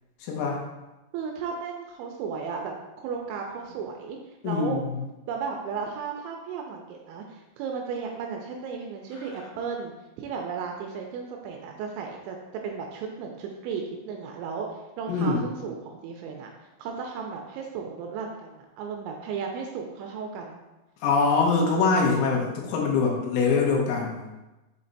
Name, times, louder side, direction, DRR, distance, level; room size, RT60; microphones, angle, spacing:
voice 1, 0.2-0.6 4.4-4.8 15.1-15.4 21.0-24.3, left 4 dB, 80° left, -1 dB, 3.6 m, -23 dB
voice 2, 1.1-4.2 4.4-4.8 5.3-16.5 16.8-20.6, right 5 dB, 80° right, 1 dB, 2.7 m, -35 dB
7.8 x 3.3 x 4.0 m, 1.1 s
omnidirectional pair, 5.6 m